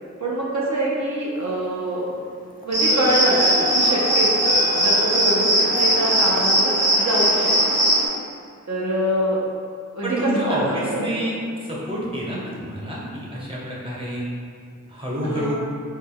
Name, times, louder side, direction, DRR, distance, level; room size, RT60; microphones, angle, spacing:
voice 1, 0.2-2.1 2.6-7.9 8.7-9.4 9.9-11.3 12.3-12.5 15.2-15.5, right 1 dB, 65° right, -6 dB, 0.6 m, -25 dB
sound 1, 1.6-1.9 2.6-6.4, left 4 dB, 30° left, 0.4 m, -34 dB
sound 2, 2.7-8.1, right 1 dB, 85° right, 1.0 m, -19 dB
voice 2, 10.0-11.4 11.6-14.3 14.9-15.5, right 1 dB, 15° right, -5 dB, 0.9 m, -28 dB
3.9 x 2.1 x 3.7 m, 2.2 s
wide cardioid pair, 45°, 31 cm